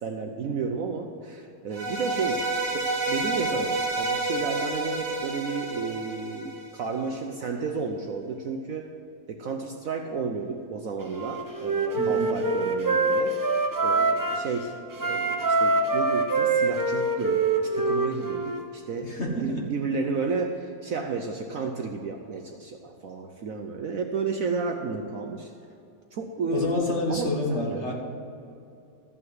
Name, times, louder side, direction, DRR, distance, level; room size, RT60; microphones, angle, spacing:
voice 1, 0.0-2.4 2.7-8.9 9.3-13.4 13.8-14.7 15.0-25.5 26.1-27.8, right 4 dB, 60° right, 4 dB, 1.0 m, -32 dB
sound 1, 1.7-6.9, right 2 dB, 45° right, 2.2 m, -29 dB
Wind instrument woodwind instrument, 11.1-14.5 14.9-18.6, right 3 dB, 25° right, 0.4 m, -25 dB
voice 2, 12.0-12.3 19.0-19.7 26.5-27.9, left 1 dB, 40° left, -1 dB, 1.8 m, -28 dB
13.5 x 5.7 x 7.9 m, 2.6 s
omnidirectional pair, 1.9 m